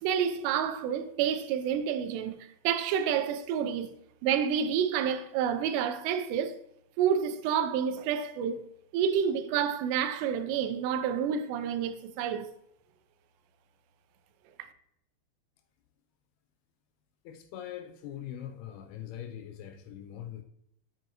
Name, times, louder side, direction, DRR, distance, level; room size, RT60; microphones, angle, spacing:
voice 1, 0.0-3.9 4.2-6.6 7.0-8.6 8.9-12.5 14.6-14.7, right 8 dB, 85° right, 2.8 m, -29 dB
voice 2, 17.3-20.4, left 10 dB, 85° left, 2.4 m, -42 dB
7.5 x 7.2 x 2.9 m
omnidirectional pair, 4.9 m